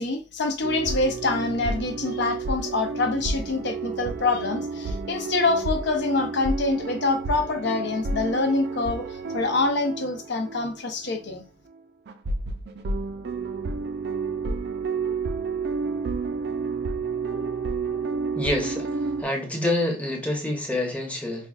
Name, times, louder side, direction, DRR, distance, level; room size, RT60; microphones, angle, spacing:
voice 1, 0.0-11.4, left 3 dB, 65° left, 0.6 m, -26 dB
sound 1, 0.6-10.8 11.1-11.2 12.1-19.2, right 4 dB, 60° right, 0.4 m, -30 dB
voice 2, 18.3-21.5, left 1 dB, 10° left, 0.8 m, -27 dB
5.0 x 2.3 x 2.3 m
head